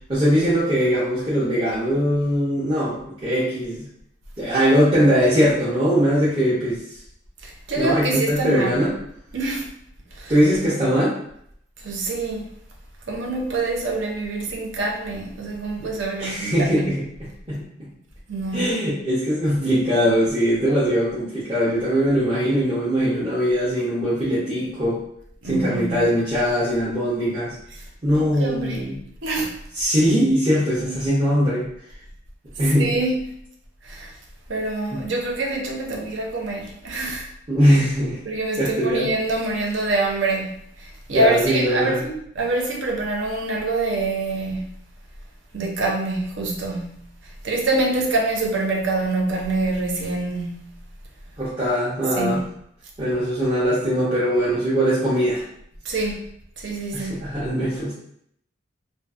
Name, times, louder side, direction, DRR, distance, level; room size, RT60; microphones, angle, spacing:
voice 1, 0.1-3.9 4.4-6.8 7.8-8.9 10.3-11.1 15.8-15.9 16.2-17.7 18.5-25.0 25.4-27.5 28.0-29.0 29.7-31.7 32.6-32.9 34.9-35.0 37.5-38.2 38.5-39.1 41.1-42.0 51.4-52.4 53.0-55.4 56.9-57.9, equal, 30° right, -11 dB, 0.7 m, -21 dB
voice 2, 7.4-8.8 9.3-9.7 10.2-10.3 11.8-12.5 13.1-16.9 18.3-18.7 25.4-26.1 28.1-28.8 29.2-29.6 30.9-31.0 32.8-33.2 33.8-34.1 34.5-37.3 38.3-44.7 45.5-47.1 47.4-50.8 52.2-52.4 55.8-56.3 56.6-57.1, right 2 dB, 75° right, 0 dB, 0.6 m, -25 dB
2.6 x 2.4 x 2.4 m, 0.69 s
head